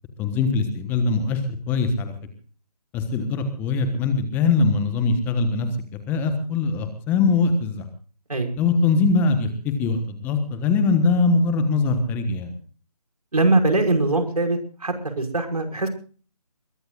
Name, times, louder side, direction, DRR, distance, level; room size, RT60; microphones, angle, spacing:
voice 1, 0.2-1.4 1.7-2.1 2.9-5.7 6.1-7.8 8.6-12.5, left 4 dB, 10° left, 8 dB, 1.3 m, -22 dB
voice 2, 13.3-15.9, right 2 dB, 75° right, 4 dB, 5.6 m, -22 dB
22.0 x 20.5 x 2.4 m, 0.40 s
figure-of-eight pair, 150°, 20 cm